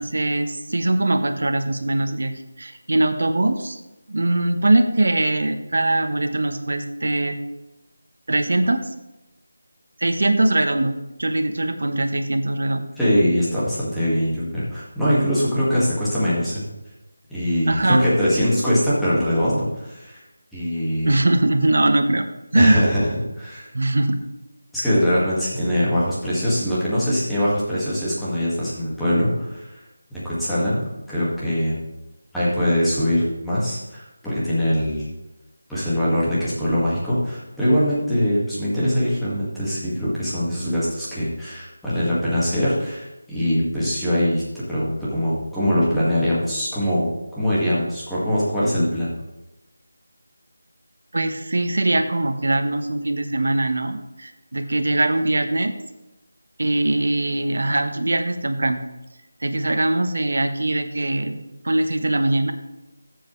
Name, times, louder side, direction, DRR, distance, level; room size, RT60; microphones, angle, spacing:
voice 1, 0.0-3.8 4.1-7.4 8.3-8.8 10.0-12.9 17.7-18.0 21.0-22.3 22.5-22.9 23.7-24.2 51.1-55.7 56.6-58.8 59.4-62.5, right 2 dB, 65° right, 8 dB, 1.1 m, -21 dB
voice 2, 13.0-16.6 17.3-20.2 20.5-21.1 22.5-23.1 23.4-23.7 24.7-29.8 30.1-31.8 32.3-35.1 35.7-44.4 44.7-49.1, equal, ahead, -12 dB, 2.0 m, -22 dB
13.5 x 7.7 x 3.3 m, 1.0 s
figure-of-eight pair, 170°, 0 cm